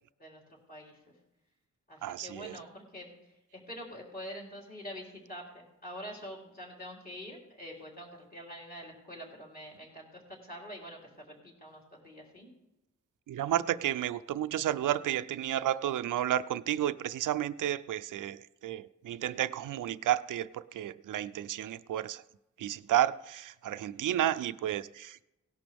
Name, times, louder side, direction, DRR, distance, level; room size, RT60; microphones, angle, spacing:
voice 1, 0.2-1.0 1.9-12.5, equal, 30° left, 3.6 m, -46 dB
voice 2, 2.0-2.5 13.3-22.2 22.6-25.2, right 11 dB, 85° right, 0.5 m, -32 dB
17.0 x 11.0 x 3.5 m
wide cardioid pair, 110°, 30 cm